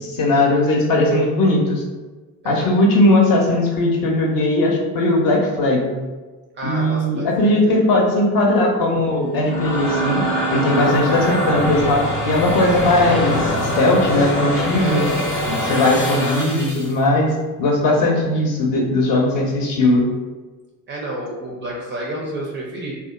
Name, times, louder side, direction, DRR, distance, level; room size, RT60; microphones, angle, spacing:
voice 1, 0.0-1.8 2.4-5.9 6.6-10.2 10.5-12.0 12.3-13.5 13.8-15.0 15.5-17.3 17.6-20.1, left 1 dB, 45° left, 0 dB, 0.6 m, -18 dB
voice 2, 2.4-2.8 6.5-7.9 14.8-15.3 20.9-22.9, right 1 dB, 25° right, -3 dB, 0.3 m, -30 dB
sound 1, 9.2-16.9, equal, 80° left, 0.7 m, -23 dB
2.6 x 2.1 x 2.3 m, 1.3 s
figure-of-eight pair, 55°, 46 cm